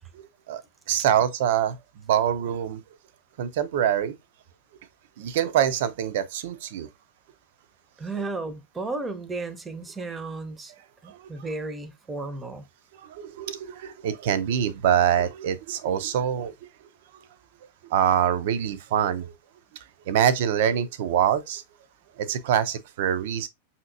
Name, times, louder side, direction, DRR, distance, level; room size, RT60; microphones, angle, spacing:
voice 1, 0.9-1.8 2.1-2.8 3.4-4.1 5.2-6.9 11.1-11.3 13.0-16.5 17.9-19.3 20.1-21.6 22.2-23.5, right 9 dB, 55° right, 0.4 m, -24 dB
voice 2, 8.0-10.7 11.0-12.7, right 3 dB, 15° right, 0.6 m, -34 dB
5.5 x 2.8 x 2.4 m
figure-of-eight pair, 90°, 0 cm